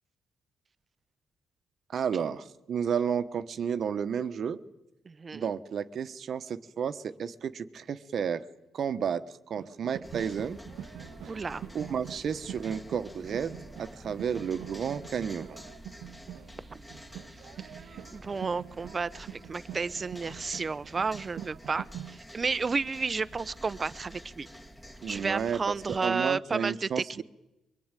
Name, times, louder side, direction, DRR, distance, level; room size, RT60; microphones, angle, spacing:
voice 1, 1.9-4.6 5.3-8.4 8.7-10.6 11.7-15.6 25.0-27.2, right 7 dB, 55° right, 11 dB, 1.2 m, -32 dB
voice 2, 5.1-5.5 11.3-11.6 17.6-24.5 25.1-27.2, right 4 dB, 35° right, 17 dB, 0.9 m, -32 dB
sound 1, 9.6-22.2, right 10 dB, 75° right, 0.9 m, -45 dB
sound 2, 10.0-26.1, equal, 10° left, 2.0 m, -49 dB
23.5 x 21.5 x 9.1 m, 0.96 s
cardioid pair, 90°, 0 cm